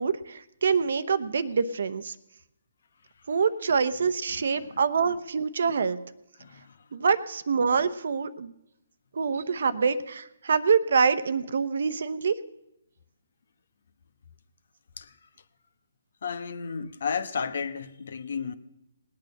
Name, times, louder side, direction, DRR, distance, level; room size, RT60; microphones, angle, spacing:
voice 1, 0.0-2.1 3.3-6.0 6.9-8.5 9.1-12.3, right 5 dB, 65° right, 0.9 m, -25 dB
voice 2, 6.4-6.8 15.0-15.1 16.2-18.5, left 6 dB, 65° left, 1.1 m, -33 dB
19.0 x 8.7 x 6.5 m
hypercardioid pair, 150°, 0 cm